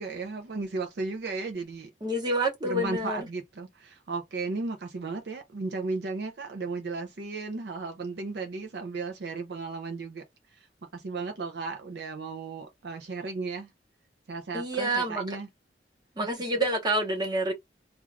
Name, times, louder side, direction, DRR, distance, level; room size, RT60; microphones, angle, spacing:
voice 1, 0.0-1.9 2.6-13.7 14.3-15.5 16.2-16.3, right 3 dB, 65° right, 0.5 m, -35 dB
voice 2, 2.0-3.3 14.5-15.2 16.2-17.5, right 1 dB, 25° right, 0.9 m, -28 dB
2.4 x 2.3 x 3.2 m
head